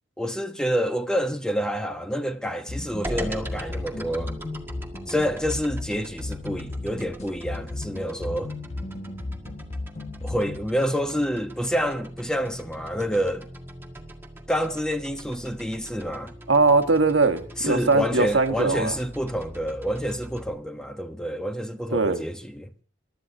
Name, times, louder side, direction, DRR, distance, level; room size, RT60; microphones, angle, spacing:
voice 1, 0.2-4.3 5.1-8.5 10.2-13.5 14.5-16.3 17.6-22.7, equal, 5° left, 1.0 m, -28 dB
sound 1, 2.7-10.7, left 2 dB, 35° left, 1.4 m, -35 dB
sound 2, 3.0-20.5, right 1 dB, 10° right, 1.8 m, -41 dB
voice 2, 16.5-19.0 21.9-22.2, right 3 dB, 80° right, 1.4 m, -21 dB
27.5 x 13.0 x 2.7 m
head